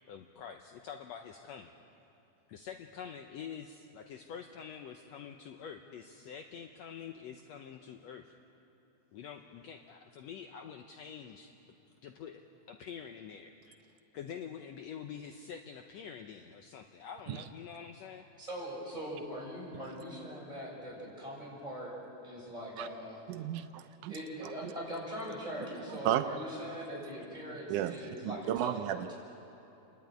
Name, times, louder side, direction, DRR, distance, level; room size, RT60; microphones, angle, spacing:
voice 1, 0.1-1.7 2.5-8.3 9.1-11.5 12.0-12.4 12.7-13.8 14.1-18.3, left 7 dB, 70° left, 5 dB, 1.8 m, -46 dB
voice 2, 18.4-22.0 22.2-23.2 24.1-29.2, equal, 10° right, -5 dB, 7.1 m, -41 dB
voice 3, 23.3-24.1 26.1-26.2 27.7-27.9 28.2-29.0, right 12 dB, 80° right, 9 dB, 2.2 m, -32 dB
29.0 x 12.0 x 9.4 m, 3.0 s
omnidirectional pair, 3.6 m